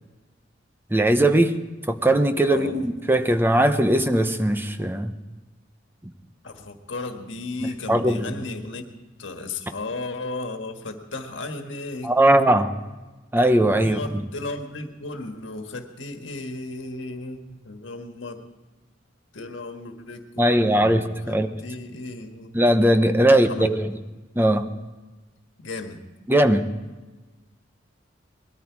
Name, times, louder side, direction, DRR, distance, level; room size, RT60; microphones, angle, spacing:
voice 1, 0.9-1.5 1.9-5.1 7.6-8.2 12.0-12.7 13.3-14.0 20.4-21.5 22.5-23.8 24.4-24.7 26.3-26.7, right 1 dB, 10° right, 8 dB, 0.9 m, -19 dB
voice 2, 2.5-2.9 6.4-8.8 9.2-12.2 13.8-18.4 19.3-22.5 23.2-23.8 25.6-26.0, left 2 dB, 75° left, 5 dB, 1.6 m, -35 dB
21.0 x 13.5 x 4.7 m, 1.2 s
head